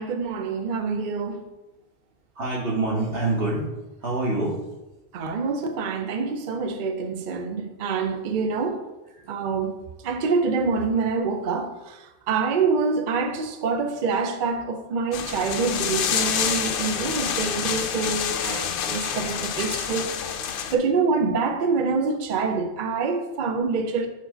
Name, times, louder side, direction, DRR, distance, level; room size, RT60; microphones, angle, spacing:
voice 1, 0.0-1.4 5.1-8.8 9.3-9.7 10.0-12.0 12.3-20.1 20.7-24.1, right 4 dB, 55° right, 0.7 m, -26 dB
voice 2, 2.4-3.7 4.0-4.6 9.1-9.3 19.3-19.5, right 2 dB, 90° right, 1.9 m, -26 dB
sound 1, 15.1-20.8, left 8 dB, 60° left, 0.7 m, -27 dB
4.6 x 4.3 x 5.6 m
omnidirectional pair, 1.1 m